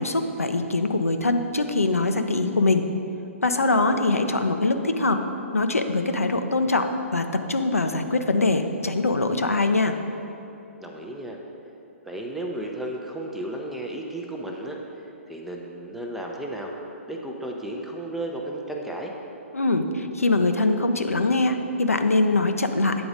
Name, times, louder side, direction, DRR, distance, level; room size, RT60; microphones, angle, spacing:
voice 1, 0.0-2.8 3.4-5.2 5.5-6.9 7.1-10.0 19.5-23.0, left 2 dB, 80° left, 7 dB, 0.5 m, -23 dB
voice 2, 3.9-4.3 10.8-11.4 12.1-14.8 15.3-16.7 17.1-19.1, right 1 dB, 5° right, 0 dB, 0.5 m, -34 dB
8.9 x 3.9 x 4.9 m, 2.8 s
figure-of-eight pair, 125°, 8 cm